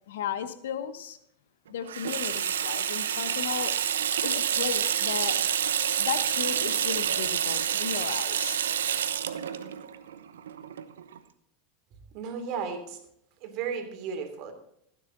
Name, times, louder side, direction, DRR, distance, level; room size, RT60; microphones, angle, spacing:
voice 1, 0.1-1.2 1.7-3.8 4.2-5.4 6.0-8.6, left 9 dB, 75° left, 12 dB, 1.2 m, -35 dB
Water tap faucet / Sink (filling or washing), 1.9-11.2, right 9 dB, 80° right, 1.0 m, -28 dB
voice 2, 12.1-13.0 13.4-14.5, right 6 dB, 50° right, 6 dB, 3.1 m, -34 dB
16.0 x 9.9 x 4.0 m, 0.73 s
hypercardioid pair, 90°, 0 cm